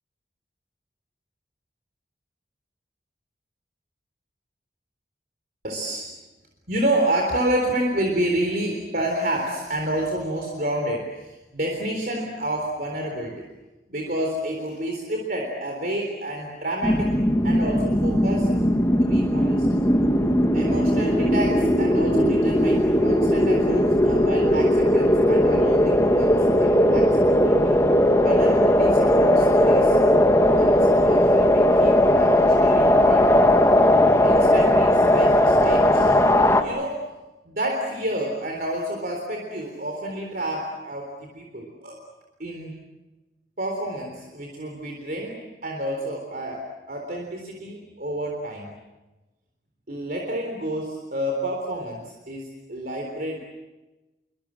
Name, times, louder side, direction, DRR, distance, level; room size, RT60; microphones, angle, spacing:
voice 1, 5.6-6.1 6.7-13.5 13.9-17.2 17.4-18.5 19.0-19.7 20.5-27.8 28.2-33.4 34.2-36.2 36.6-37.1 37.4-42.0 42.4-42.8 43.6-48.7 49.9-53.4, right 1 dB, 55° right, 2 dB, 3.8 m, -29 dB
sound 1, 16.8-36.6, left 1 dB, 15° left, 1.6 m, -18 dB
27.5 x 24.5 x 7.6 m, 1.1 s
head